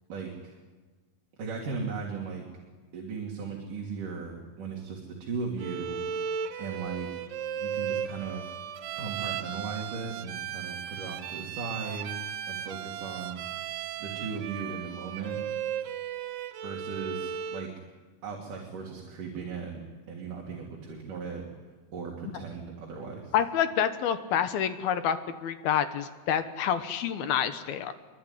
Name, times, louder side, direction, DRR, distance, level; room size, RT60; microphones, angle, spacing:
voice 1, 0.1-0.5 1.4-2.5 2.9-6.0 6.6-7.1 7.6-8.5 9.0-13.4 14.0-15.4 16.6-17.7 18.2-19.8 20.1-21.4 21.9-23.3, right 5 dB, 55° right, -1 dB, 4.3 m, -37 dB
Bowed string instrument, 5.6-17.7, right 8 dB, 80° right, 3.2 m, -36 dB
voice 2, 23.3-25.2 25.4-27.9, left 9 dB, 70° left, 10 dB, 2.9 m, -27 dB
25.5 x 23.5 x 9.9 m, 1.3 s
omnidirectional pair, 4.7 m